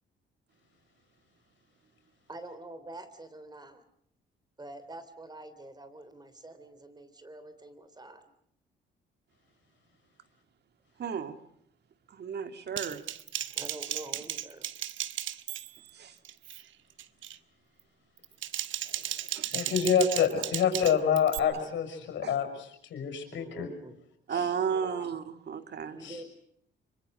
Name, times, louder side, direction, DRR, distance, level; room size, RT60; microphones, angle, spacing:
voice 1, 2.3-3.8 4.6-8.2 13.5-14.7 23.3-23.9 24.7-25.1 25.9-26.2, right 2 dB, 20° right, 12 dB, 3.3 m, -46 dB
voice 2, 11.0-11.4 12.1-13.0 15.9-16.2 19.3-19.5 22.2-22.3 24.3-26.0, right 7 dB, 55° right, 9 dB, 2.0 m, -33 dB
Typing, 12.8-15.9 16.2-16.6 17.0-17.4 18.2-21.4, right 12 dB, 75° right, 1.1 m, -35 dB
voice 3, 18.8-23.7 24.3-24.5 26.0-26.2, left 7 dB, 70° left, 7 dB, 6.2 m, -28 dB
25.5 x 24.0 x 6.6 m, 0.69 s
cardioid pair, 90°, 20 cm